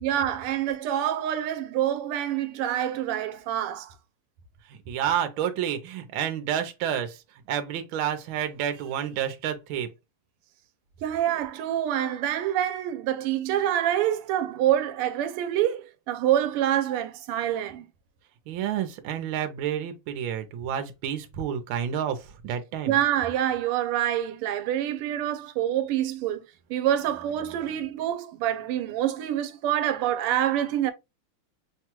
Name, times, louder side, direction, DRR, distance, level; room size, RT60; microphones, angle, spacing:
voice 1, 0.0-3.9 11.0-17.8 22.9-26.4 26.7-30.9, right 11 dB, 90° right, 1.5 m, -26 dB
voice 2, 4.7-7.2 7.5-9.9 18.5-23.0 27.6-27.8, right 9 dB, 75° right, 1.4 m, -30 dB
5.8 x 2.2 x 2.9 m
omnidirectional pair, 2.4 m